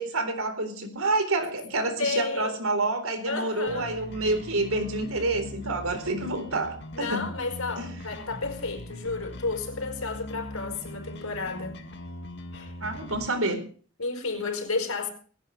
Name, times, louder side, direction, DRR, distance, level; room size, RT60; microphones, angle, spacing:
voice 1, 0.0-7.3 7.8-7.9 12.8-13.6, right 2 dB, 85° right, 4.0 m, -28 dB
voice 2, 2.0-2.6 3.2-3.9 6.9-11.8 12.5-12.7 14.0-15.1, left 3 dB, 85° left, 4.9 m, -32 dB
sound 1, 3.7-13.3, left 1 dB, 50° left, 2.2 m, -41 dB
19.5 x 17.0 x 3.3 m
head